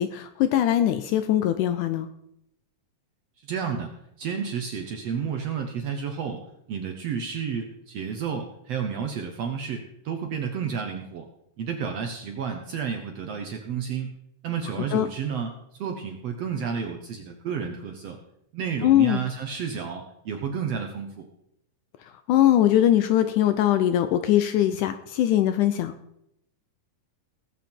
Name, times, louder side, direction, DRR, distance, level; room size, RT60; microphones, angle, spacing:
voice 1, 0.0-2.1 14.8-15.1 18.8-19.2 22.0-25.9, left 12 dB, 80° left, 10 dB, 1.9 m, -21 dB
voice 2, 3.4-6.4 6.7-11.3 11.6-14.1 14.4-18.2 18.5-21.2, right 6 dB, 65° right, 4 dB, 1.6 m, -31 dB
19.0 x 8.3 x 4.4 m, 0.78 s
omnidirectional pair, 4.0 m